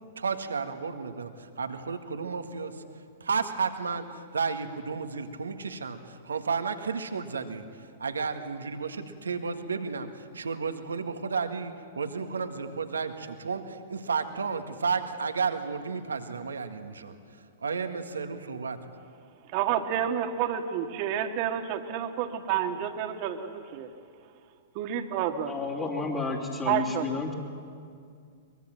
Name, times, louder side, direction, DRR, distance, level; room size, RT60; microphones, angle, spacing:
voice 1, 0.2-2.8 3.2-17.2 17.6-18.9, right 5 dB, 80° right, 7 dB, 1.7 m, -32 dB
voice 2, 19.4-23.9 24.7-25.5 26.7-27.2, right 9 dB, 45° right, 5 dB, 1.8 m, -29 dB
voice 3, 25.5-27.3, left 4 dB, 25° left, -3 dB, 3.2 m, -31 dB
23.0 x 22.5 x 7.7 m, 2.3 s
figure-of-eight pair, 105°, 0 cm